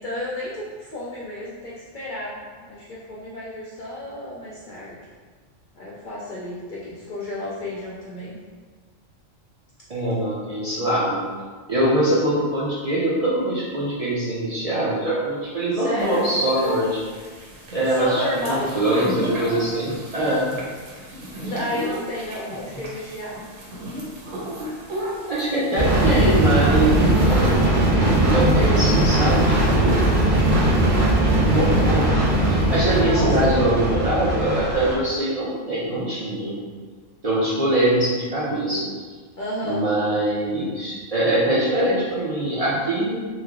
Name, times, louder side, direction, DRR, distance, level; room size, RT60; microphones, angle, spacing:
voice 1, 0.0-5.0 5.8-8.3 15.7-16.3 17.9-18.7 21.4-23.4 33.0-34.0 39.4-39.8, left 1 dB, 60° left, -6 dB, 0.5 m, -31 dB
voice 2, 9.9-11.2 11.7-17.0 17.7-20.5 25.3-30.0 31.3-36.6 37.2-38.9 39.6-43.2, right 1 dB, 65° right, -8 dB, 0.3 m, -23 dB
sound 1, 16.0-27.5, equal, 80° right, 1.1 m, -34 dB
sound 2, 25.8-35.0, right 1 dB, 40° right, 1.1 m, -19 dB
3.1 x 2.0 x 3.5 m, 1.5 s
omnidirectional pair, 1.3 m